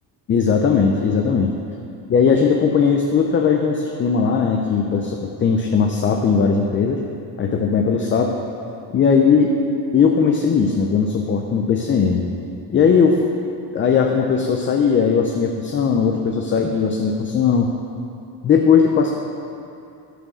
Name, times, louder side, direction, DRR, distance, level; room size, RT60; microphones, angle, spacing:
voice 1, 0.3-1.5 2.1-7.0 7.4-8.3 8.9-9.5 9.9-12.3 12.7-13.2 13.7-17.7 18.4-19.1, left 6 dB, 30° left, 2 dB, 0.4 m, -18 dB
11.5 x 4.5 x 6.1 m, 2.7 s
cardioid pair, 170°, 42 cm